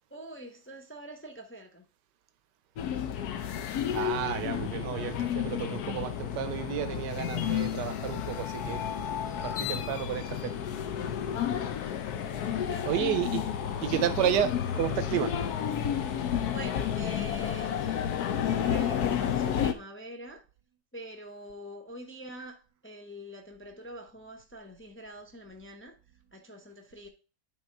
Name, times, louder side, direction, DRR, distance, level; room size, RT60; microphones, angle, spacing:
voice 1, 0.1-1.8 12.4-13.0 16.2-18.1 18.4-20.4 20.9-26.0 26.3-27.1, equal, 20° left, 0.3 m, -45 dB
sound 1, 2.8-19.7, left 9 dB, 65° left, 1.2 m, -31 dB
voice 2, 3.9-8.9 9.4-10.6 12.8-13.5 13.8-15.4, right 10 dB, 80° right, 1.4 m, -31 dB
9.1 x 3.7 x 4.5 m
omnidirectional pair, 1.9 m